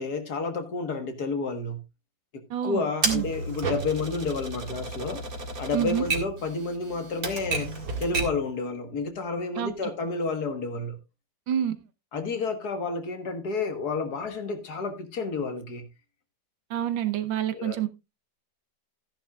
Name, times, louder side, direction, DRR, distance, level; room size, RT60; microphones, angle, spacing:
voice 1, 0.0-1.8 2.6-5.2 5.6-7.7 8.0-11.0 12.1-15.9 17.5-17.8, left 3 dB, 55° left, 1.9 m, -30 dB
voice 2, 2.5-3.3 5.7-6.1 9.6-9.9 11.5-11.7 16.7-17.9, right 10 dB, 90° right, 1.8 m, -28 dB
Typewriter, 3.0-8.5, right 3 dB, 50° right, 2.2 m, -32 dB
14.5 x 10.0 x 2.4 m
omnidirectional pair, 2.0 m